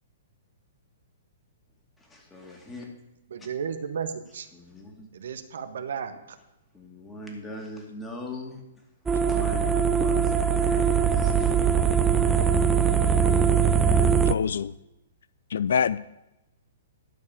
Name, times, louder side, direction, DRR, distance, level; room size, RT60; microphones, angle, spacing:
voice 1, 2.0-2.9 4.5-5.1 6.7-8.6 9.1-11.5, left 2 dB, 10° left, 2.5 m, -41 dB
voice 2, 3.3-4.5 5.1-6.1, right 7 dB, 65° right, 0.9 m, -33 dB
sound 1, 9.1-14.3, right 6 dB, 10° right, 0.6 m, -21 dB
voice 3, 14.3-14.7 15.5-16.0, left 7 dB, 65° left, 0.3 m, -25 dB
11.5 x 4.8 x 8.2 m
hypercardioid pair, 120°, 0 cm